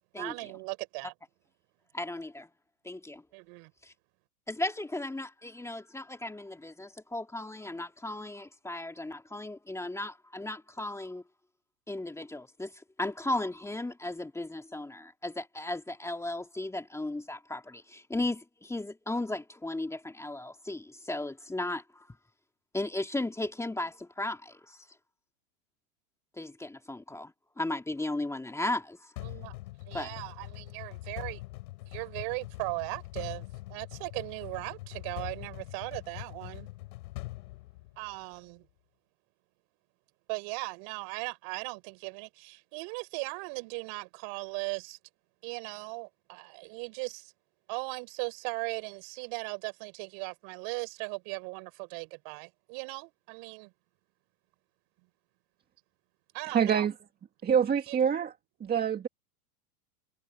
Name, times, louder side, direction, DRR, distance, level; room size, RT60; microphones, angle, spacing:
voice 1, 0.2-1.1 3.3-3.7 29.2-29.5 29.9-31.4 31.9-36.7 38.0-38.7 40.3-45.0 45.4-47.3 47.7-53.7 56.3-56.9 57.9-58.0, right 33 dB, 55° right, 5.5 m, -38 dB
voice 2, 1.9-2.5 2.8-3.2 3.8-3.9 4.5-11.2 11.9-22.1 22.7-24.9 26.4-29.1 29.9-30.1, left 2 dB, 5° left, 2.6 m, -36 dB
sound 1, 29.2-38.3, left 19 dB, 70° left, 6.6 m, -43 dB
voice 3, 56.5-56.9 57.4-58.3 58.6-59.1, right 8 dB, 20° right, 2.0 m, -26 dB
supercardioid pair, 125°, 45 cm